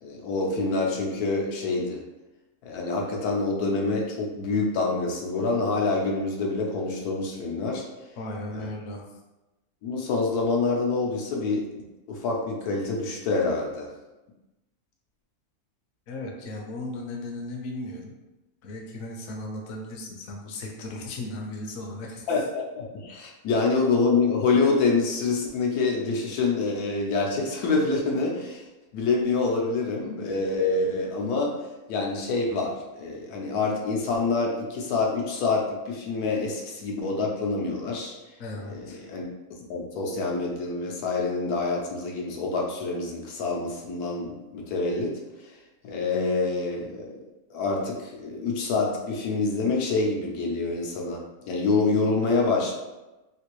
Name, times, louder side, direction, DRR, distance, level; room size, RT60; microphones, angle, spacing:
voice 1, 0.0-2.0 2.6-7.8 8.5-8.7 9.8-11.7 12.1-13.9 22.3-28.6 28.9-31.6 31.9-38.1 38.7-39.2 39.7-45.1 45.8-47.2 47.5-52.7, left 3 dB, 85° left, -1 dB, 1.2 m, -26 dB
voice 2, 8.2-9.2 16.1-18.1 18.6-22.4 23.5-23.6 38.4-39.0, left 2 dB, 65° left, 0 dB, 0.9 m, -36 dB
3.2 x 2.5 x 3.0 m, 1.1 s
omnidirectional pair, 1.6 m